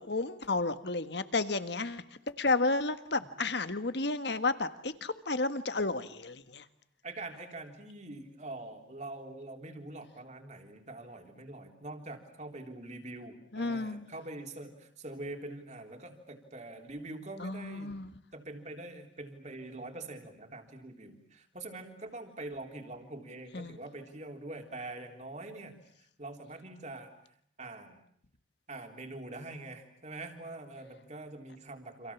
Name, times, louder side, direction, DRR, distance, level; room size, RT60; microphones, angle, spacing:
voice 1, 0.0-2.0 2.4-6.6 13.5-14.1 17.4-18.1 23.5-23.8, left 3 dB, 60° left, 11 dB, 1.6 m, -32 dB
voice 2, 7.0-27.2 27.6-28.0 28.7-32.1, right 2 dB, 40° right, 4 dB, 3.6 m, -44 dB
29.5 x 27.0 x 7.3 m, 0.66 s
head